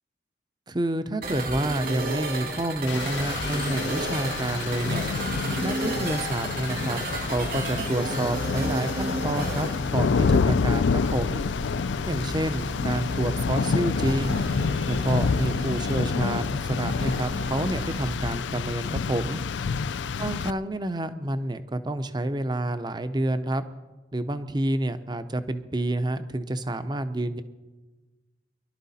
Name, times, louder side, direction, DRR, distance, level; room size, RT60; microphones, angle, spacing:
voice 1, 0.7-5.0 5.6-7.0 7.3-11.4 12.1-14.4 14.9-19.4 20.2-23.6 24.1-27.4, right 1 dB, 25° right, 12 dB, 0.6 m, -29 dB
sound 1, 1.2-18.1, right 1 dB, 50° right, 1.9 m, -33 dB
Rain, 2.9-20.5, left 5 dB, 75° left, 0.4 m, -28 dB
23.5 x 11.5 x 4.2 m, 1.2 s
head